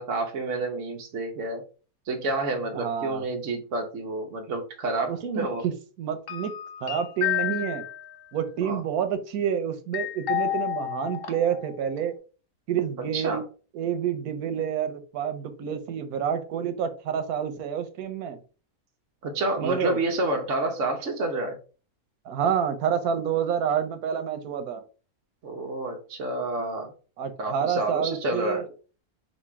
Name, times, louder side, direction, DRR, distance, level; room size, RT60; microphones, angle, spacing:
voice 1, 0.0-1.6 2.1-5.7 8.6-8.8 13.1-13.4 19.2-21.6 25.4-26.9 27.4-28.6, right 2 dB, 60° right, 1 dB, 1.0 m, -29 dB
voice 2, 2.7-3.2 5.1-5.7 6.0-6.5 6.8-7.8 8.3-12.2 12.7-13.4 13.7-18.4 19.6-20.0 22.2-24.8 27.2-28.7, right 8 dB, 90° right, 9 dB, 1.2 m, -28 dB
sound 1, 6.3-8.1 9.9-11.7 12.0-12.1, left 12 dB, 50° left, 0.8 m, -30 dB
4.1 x 2.3 x 4.5 m, 0.36 s
omnidirectional pair, 1.5 m